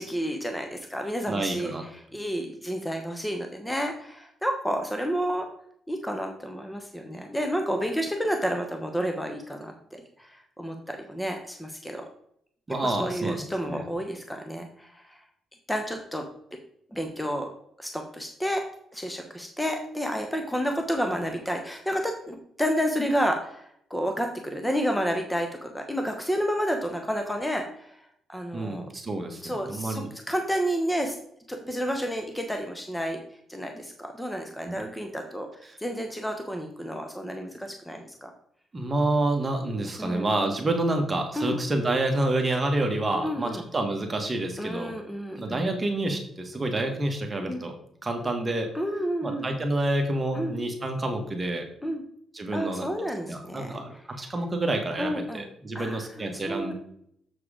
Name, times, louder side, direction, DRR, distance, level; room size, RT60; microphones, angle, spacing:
voice 1, 0.0-1.7 2.1-5.5 5.9-12.0 12.8-15.2 15.7-16.3 16.9-17.5 17.8-18.6 18.9-28.0 28.3-28.9 29.4-31.2 31.5-33.2 33.5-35.5 35.8-38.3 40.0-40.3 41.4-41.6 43.2-43.6 44.6-45.7 47.5-47.6 48.7-49.5 50.3-50.6 51.8-52.0 52.5-53.7 55.0-55.4 55.7-56.7, equal, 5° left, 4 dB, 0.9 m, -30 dB
voice 2, 1.3-1.8 12.7-13.8 28.5-30.1 34.6-34.7 35.7-35.8 38.7-44.9 45.3-47.7 48.0-48.7 49.2-51.6 52.3-52.9 53.3-56.7, right 2 dB, 25° right, 3 dB, 1.5 m, -28 dB
7.3 x 4.7 x 5.0 m, 0.69 s
cardioid pair, 90°, 0 cm